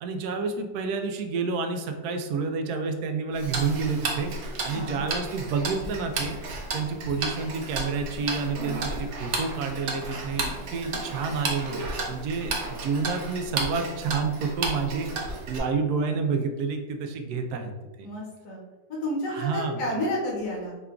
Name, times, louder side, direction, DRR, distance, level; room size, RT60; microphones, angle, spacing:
voice 1, 0.0-6.3 6.7-11.8 12.1-17.7 18.0-18.1 19.3-19.8, right 4 dB, 85° right, 5 dB, 1.1 m, -29 dB
Tick-tock, 3.4-15.6, right 3 dB, 60° right, 0.9 m, -33 dB
voice 2, 4.7-5.1 18.0-18.6 19.0-20.8, left 1 dB, 60° left, -3 dB, 1.4 m, -30 dB
4.8 x 2.2 x 3.6 m, 1.2 s
omnidirectional pair, 1.6 m